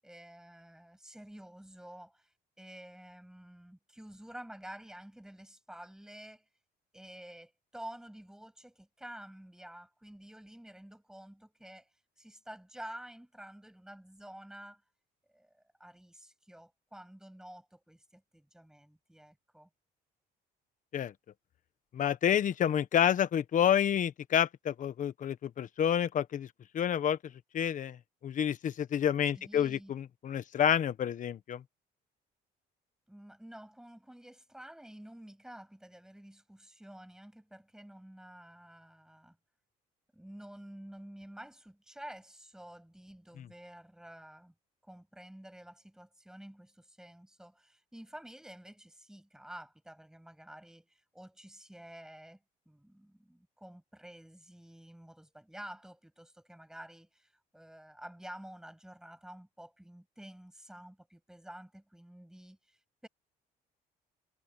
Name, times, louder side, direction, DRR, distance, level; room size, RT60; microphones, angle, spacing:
voice 1, 0.0-6.4 6.9-11.9 12.2-14.8 15.3-19.7 29.3-29.9 33.1-39.4 40.1-44.5 44.8-52.4 52.7-63.1, right 1 dB, 5° right, 7.6 m, -50 dB
voice 2, 21.9-26.5 26.7-27.2 27.5-28.0 28.2-31.6 43.4-43.5, left 9 dB, 50° left, 1.4 m, -29 dB
cardioid pair, 110°, 17 cm